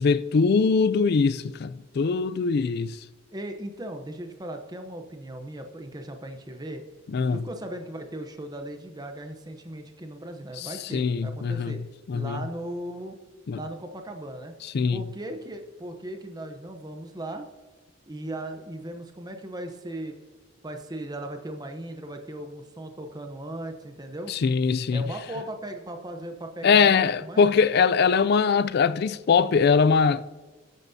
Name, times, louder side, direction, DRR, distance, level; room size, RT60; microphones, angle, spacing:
voice 1, 0.0-3.0 7.1-7.4 10.6-11.8 12.1-12.4 13.5-13.6 14.7-15.0 24.3-25.0 26.6-30.2, left 5 dB, 50° left, 0.4 m, -22 dB
voice 2, 3.3-6.8 7.3-11.8 12.1-13.2 13.6-14.5 14.9-17.5 18.1-20.1 20.6-24.4 24.9-27.4, right 1 dB, 20° right, 0.8 m, -37 dB
13.0 x 9.2 x 2.7 m
head